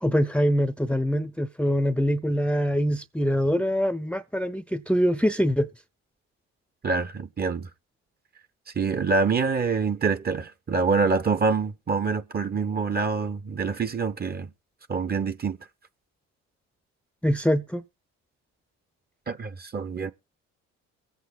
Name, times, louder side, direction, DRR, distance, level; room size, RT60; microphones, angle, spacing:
voice 1, 0.0-5.7 17.2-17.8, equal, 5° left, 0.7 m, -24 dB
voice 2, 6.8-7.7 8.8-14.5 14.9-15.6 19.3-20.1, right 4 dB, 35° right, 0.9 m, -26 dB
23.0 x 8.2 x 2.3 m
supercardioid pair, 75°, 29 cm